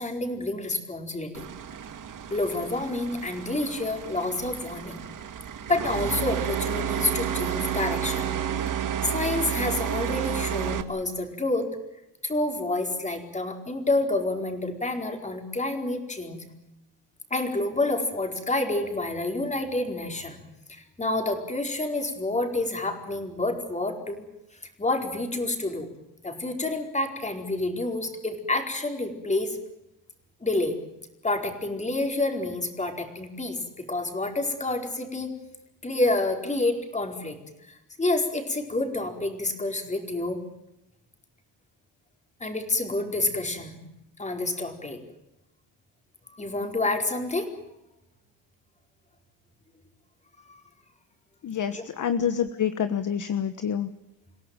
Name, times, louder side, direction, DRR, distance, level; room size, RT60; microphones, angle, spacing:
voice 1, 0.0-1.5 2.3-5.0 5.7-8.3 9.0-11.7 12.2-16.4 17.3-20.4 20.7-24.2 24.8-25.9 26.2-29.6 30.4-30.8 31.2-35.3 35.8-37.4 37.7-40.4 42.4-43.8 44.2-45.0 46.3-47.5 50.5-50.6 51.7-51.8, left 2 dB, 15° left, 4 dB, 4.5 m, -28 dB
sound 1, 1.3-10.8, right 9 dB, 45° right, 2.0 m, -31 dB
voice 2, 51.4-53.9, left 8 dB, 40° left, 10 dB, 1.4 m, -27 dB
28.5 x 17.0 x 9.0 m, 0.89 s
cardioid pair, 145°, 44 cm